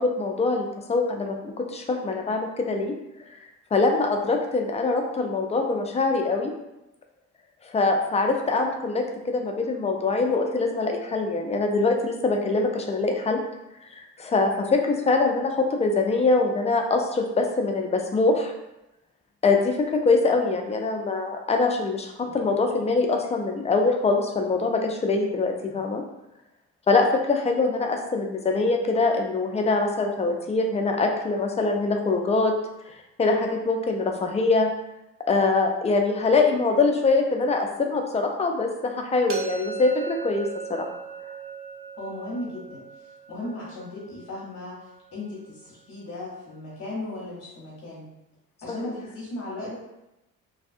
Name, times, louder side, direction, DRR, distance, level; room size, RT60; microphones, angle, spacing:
voice 1, 0.0-2.9 3.7-6.5 7.6-13.4 13.9-18.5 19.4-26.0 26.9-32.5 32.9-33.0 33.2-34.7 35.3-40.9 48.8-48.9, left 3 dB, 20° left, 3 dB, 0.4 m, -23 dB
sound 1, 39.3-45.1, right 7 dB, 45° right, 0.6 m, -38 dB
voice 2, 42.0-48.1 48.6-49.7, left 1 dB, 55° left, -7 dB, 0.9 m, -36 dB
2.6 x 2.2 x 2.5 m, 0.93 s
cardioid pair, 90°, 30 cm